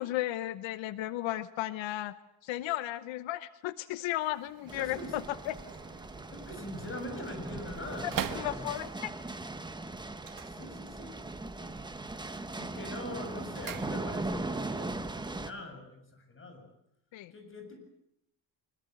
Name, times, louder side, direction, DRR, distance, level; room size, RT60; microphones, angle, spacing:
voice 1, 0.0-2.1 2.4-5.6 8.3-9.1 17.1-17.3, left 15 dB, 90° left, 14 dB, 1.0 m, -34 dB
sound 1, 4.1-9.1 10.1-11.3 11.6-12.1 12.4-14.5 14.8-14.9, right 9 dB, 45° right, 1.9 m, -44 dB
sound 2, 4.7-15.5, right 2 dB, 10° right, 1.3 m, -39 dB
voice 2, 4.8-5.2 6.3-8.7 10.4-11.1 11.6-11.7 12.1-16.7 17.3-17.8, left 1 dB, 30° left, 5 dB, 7.3 m, -43 dB
25.0 x 21.5 x 8.0 m, 0.80 s
cardioid pair, 140°, 44 cm